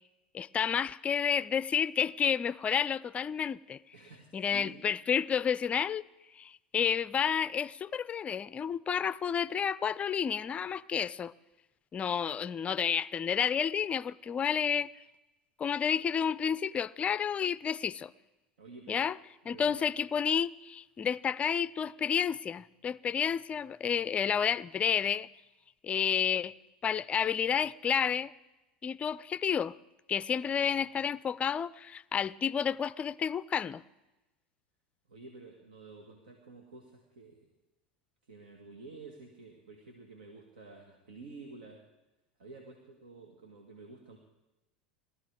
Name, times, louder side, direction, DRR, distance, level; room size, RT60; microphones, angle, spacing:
voice 1, 0.3-3.8 4.3-6.0 6.4-11.3 11.9-14.9 15.6-18.1 18.9-19.2 19.5-25.3 25.8-26.5 26.8-28.3 28.8-29.7 30.1-33.8, left 7 dB, 25° left, 0.4 m, -30 dB
voice 2, 3.9-4.8 18.6-19.1 19.5-19.8 35.1-37.4 38.2-41.8 42.4-44.2, right 3 dB, 75° right, 2.0 m, -50 dB
19.0 x 13.5 x 4.8 m
hypercardioid pair, 90°, 5 cm